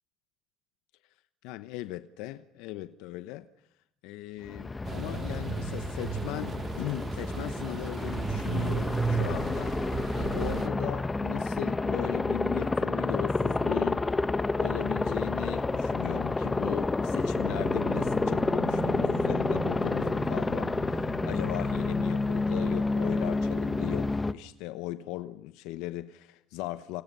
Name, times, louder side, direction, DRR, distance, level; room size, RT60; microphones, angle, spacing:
voice 1, 1.4-3.5 4.0-14.0 14.6-27.0, left 16 dB, 85° left, 1.0 m, -37 dB
Aircraft, 4.4-24.3, left 3 dB, 15° left, 1.0 m, -29 dB
sound 1, 4.8-10.7, right 6 dB, 35° right, 1.9 m, -34 dB
sound 2, 16.7-24.1, right 12 dB, 85° right, 2.0 m, -43 dB
28.5 x 27.5 x 5.6 m
cardioid pair, 125°, 0 cm